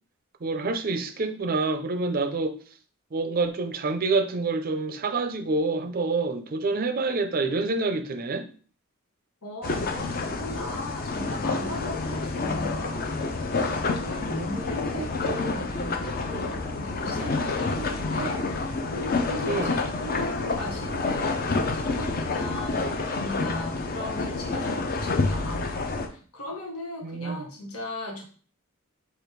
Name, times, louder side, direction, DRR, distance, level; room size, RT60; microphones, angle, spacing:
voice 1, 0.4-2.6 3.1-8.5 19.5-19.8 27.0-27.5, right 3 dB, 40° right, 8 dB, 0.5 m, -27 dB
voice 2, 9.4-13.2 13.5-28.2, equal, 85° left, 0 dB, 1.2 m, -37 dB
sound 1, 9.6-26.1, left 3 dB, 45° left, 0.5 m, -28 dB
5.0 x 2.3 x 4.5 m, 0.41 s
head